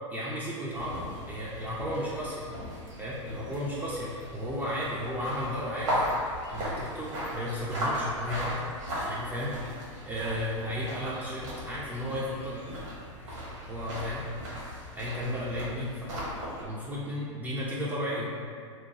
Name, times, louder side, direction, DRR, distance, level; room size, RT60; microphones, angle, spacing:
voice 1, 0.1-2.5 3.0-6.0 6.5-8.6 9.1-9.5 10.1-12.6 13.2-14.2 14.9-16.2 16.6-18.3, equal, 10° right, -7 dB, 0.3 m, -34 dB
sound 1, 0.7-16.6, equal, 75° right, 1.1 m, -37 dB
2.8 x 2.2 x 2.7 m, 2.1 s
hypercardioid pair, 100°, 16 cm